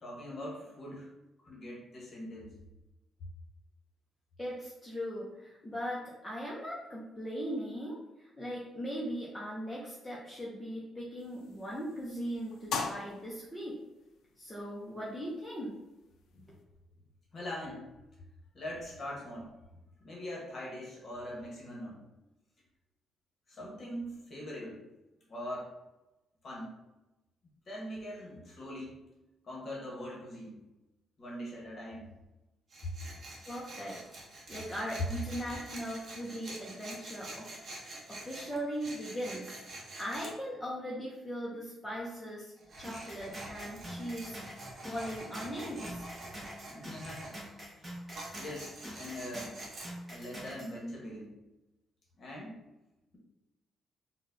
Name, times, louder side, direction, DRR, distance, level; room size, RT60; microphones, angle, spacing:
voice 1, 0.0-1.1 1.4-2.5 16.3-16.5 17.3-17.9 18.5-19.5 20.0-22.0 23.5-24.9 25.3-25.7 26.4-26.7 27.7-29.0 29.4-30.6 31.2-32.1 32.8-32.9 46.7-47.4 47.7-47.9 48.4-49.6 50.1-51.3 52.2-52.6, left 1 dB, 30° left, -4 dB, 0.9 m, -42 dB
voice 2, 4.4-13.8 14.4-15.8 33.5-34.0 34.5-37.6 38.1-39.6 40.0-44.4 44.8-46.1, equal, 5° left, -6 dB, 0.4 m, -39 dB
sound 1, 11.2-16.6, left 4 dB, 85° left, 0.4 m, -43 dB
Tools, 32.7-40.3 42.6-47.3 48.1-49.9, right 2 dB, 40° right, 0.7 m, -47 dB
sound 2, 42.8-50.7, equal, 10° right, 0.9 m, -46 dB
4.1 x 2.0 x 2.5 m, 1.0 s
cardioid pair, 180°, 0 cm